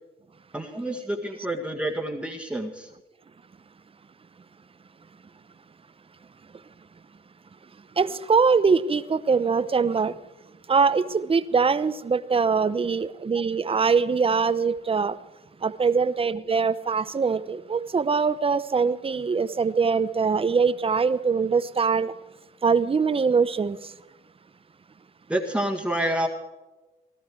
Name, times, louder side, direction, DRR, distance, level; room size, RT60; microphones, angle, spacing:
voice 1, 0.5-2.9 25.3-26.3, right 1 dB, 5° right, 1.8 m, -28 dB
voice 2, 8.0-10.1 10.7-15.1 15.6-22.1 22.6-23.8, right 5 dB, 30° right, 0.9 m, -23 dB
18.0 x 13.0 x 4.7 m
cardioid pair, 90°, 20 cm